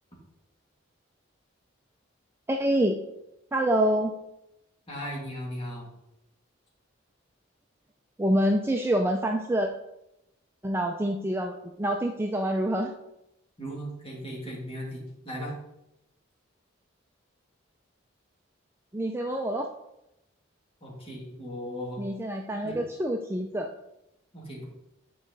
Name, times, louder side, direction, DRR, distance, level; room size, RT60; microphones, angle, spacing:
voice 1, 2.5-3.0 3.5-4.1 8.2-9.7 10.6-12.9 18.9-19.7 22.0-23.7, right 1 dB, 10° right, 3 dB, 0.4 m, -26 dB
voice 2, 4.9-5.9 13.6-15.5 20.8-22.0 22.6-22.8 24.3-24.6, equal, 30° left, -3 dB, 2.4 m, -37 dB
8.6 x 4.9 x 4.0 m, 0.87 s
head